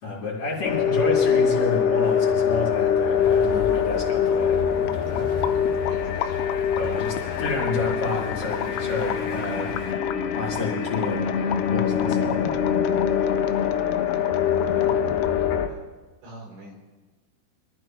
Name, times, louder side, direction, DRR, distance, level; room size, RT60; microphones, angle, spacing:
voice 1, 0.0-5.3 6.8-9.7 10.3-11.3 11.7-12.5 14.7-14.9, left 3 dB, 35° left, -9 dB, 4.3 m, -30 dB
sound 1, 0.6-15.7, left 7 dB, 70° left, 2.9 m, -24 dB
sound 2, 2.0-9.9, right 2 dB, 50° right, 2.1 m, -46 dB
sound 3, 3.8-15.5, left 11 dB, 90° left, 3.1 m, -35 dB
voice 2, 5.9-7.2 14.2-14.3 15.7-15.8 16.2-16.8, right 2 dB, 75° right, -2 dB, 6.0 m, -46 dB
25.5 x 14.0 x 3.1 m, 1.2 s
omnidirectional pair, 5.3 m